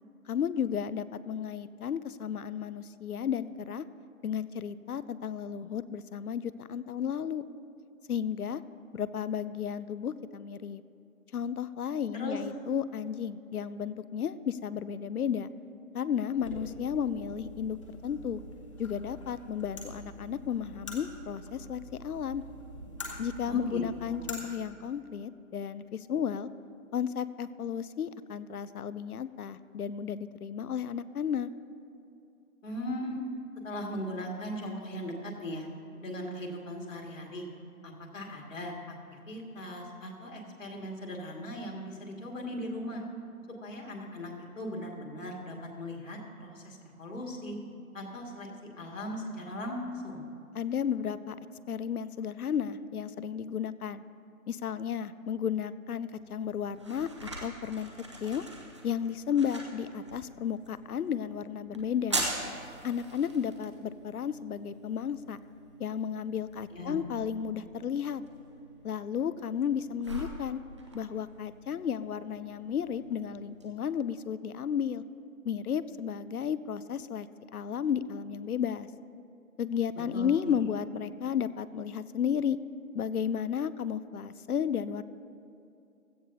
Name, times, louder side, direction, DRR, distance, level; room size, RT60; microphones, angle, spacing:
voice 1, 0.3-3.8 4.2-7.5 8.1-8.6 8.9-10.8 11.3-15.5 15.9-17.8 18.0-18.4 18.8-22.4 23.2-26.5 26.9-31.5 50.5-51.4 51.7-54.0 54.5-57.1 57.4-57.9 58.2-58.4 58.8-62.2 62.8-65.4 65.8-68.2 68.8-70.6 70.9-75.0 75.5-77.3 77.5-78.9 79.6-82.6 82.9-85.0, left 8 dB, 80° left, 15 dB, 0.6 m, -33 dB
sound 1, 16.3-24.4, left 1 dB, 20° left, 1.0 m, -45 dB
voice 2, 23.5-24.2 32.6-33.2 33.6-35.7 36.0-37.5 37.8-38.7 39.1-43.0 43.6-47.6 47.9-48.5 48.8-50.2 66.7-67.0 80.1-80.6, equal, 60° left, -1 dB, 2.2 m, -38 dB
sound 2, 56.1-73.7, right 2 dB, 20° right, 0.7 m, -43 dB
16.5 x 12.5 x 2.8 m, 2.7 s
figure-of-eight pair, 155°, 43 cm